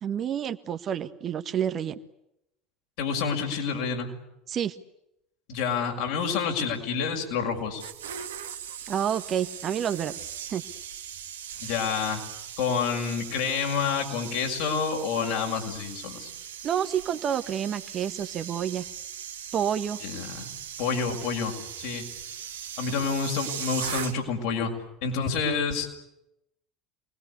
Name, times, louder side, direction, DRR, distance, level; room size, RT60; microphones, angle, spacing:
voice 1, 0.0-2.0 4.5-4.8 8.9-10.6 16.6-18.8 19.5-20.0, right 9 dB, 40° right, 10 dB, 1.5 m, -29 dB
voice 2, 3.0-4.1 5.5-7.8 11.6-12.2 12.6-16.3 20.0-20.5 20.8-22.1 22.8-24.7 25.0-26.0, left 6 dB, 60° left, 2 dB, 6.3 m, -28 dB
sound 1, 7.5-24.5 24.7-25.0, right 9 dB, 75° right, 2.2 m, -39 dB
28.0 x 21.0 x 8.5 m, 0.83 s
figure-of-eight pair, 70°, 0 cm